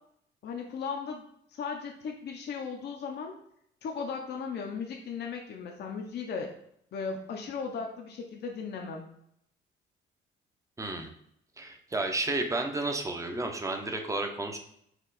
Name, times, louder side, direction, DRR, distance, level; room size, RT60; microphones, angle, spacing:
voice 1, 0.4-1.2 1.5-3.3 3.8-6.5 6.9-9.1, left 5 dB, 55° left, 1 dB, 0.6 m, -36 dB
voice 2, 10.8-11.1 11.6-14.6, right 2 dB, 15° right, 4 dB, 0.7 m, -32 dB
4.4 x 2.4 x 3.9 m, 0.72 s
cardioid pair, 90°, 20 cm